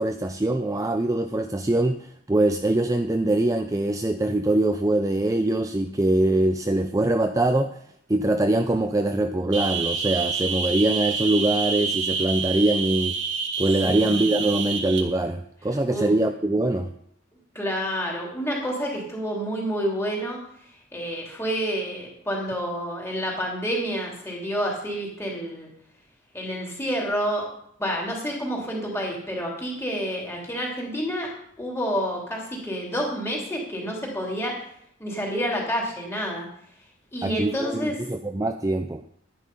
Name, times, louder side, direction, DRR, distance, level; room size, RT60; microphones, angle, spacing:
voice 1, 0.0-7.8 8.1-13.2 13.6-16.9 37.2-39.0, right 1 dB, 15° right, 7 dB, 0.5 m, -23 dB
sound 1, 9.5-15.0, right 5 dB, 65° right, 1.6 m, -28 dB
voice 2, 13.8-14.3 15.9-16.2 17.5-20.4 20.9-25.7 26.3-27.5 27.8-31.3 31.6-34.5 35.0-36.5 37.1-37.9, equal, 15° left, -2 dB, 3.2 m, -29 dB
11.5 x 10.0 x 5.4 m, 0.70 s
head